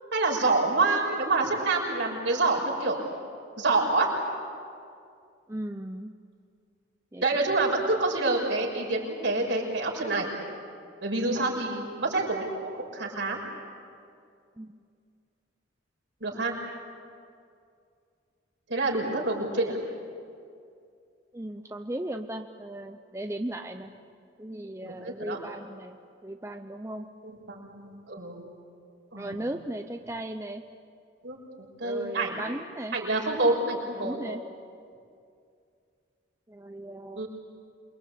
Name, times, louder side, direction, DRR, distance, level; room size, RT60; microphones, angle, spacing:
voice 1, 0.1-3.0 3.6-4.1 7.2-10.3 11.0-13.4 16.2-16.5 18.7-19.8 24.8-25.4 27.2-28.4 29.1-29.5 31.2-31.4 31.8-32.4 32.9-34.3 37.1-37.3, right 3 dB, 65° right, -1 dB, 6.1 m, -27 dB
voice 2, 5.5-6.1 7.1-7.2 14.6-14.7 16.3-16.7 21.3-23.9 24.4-26.0 26.2-27.1 29.2-30.6 31.8-33.0 34.0-34.4 36.5-37.2, right 1 dB, 15° right, 6 dB, 0.6 m, -37 dB
28.0 x 24.0 x 8.6 m, 2.4 s
head